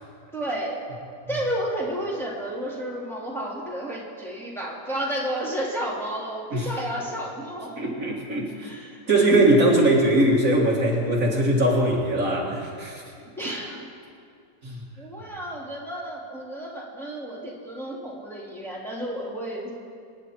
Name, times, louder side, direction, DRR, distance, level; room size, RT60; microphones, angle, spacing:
voice 1, 0.3-0.8 1.3-8.0 8.6-9.0 13.4-13.9 15.0-19.7, right 1 dB, ahead, -5 dB, 2.6 m, -32 dB
voice 2, 7.8-8.7 9.1-13.0 14.6-14.8, right 1 dB, 50° right, -3 dB, 2.3 m, -21 dB
26.5 x 9.8 x 4.4 m, 2.4 s
omnidirectional pair, 1.8 m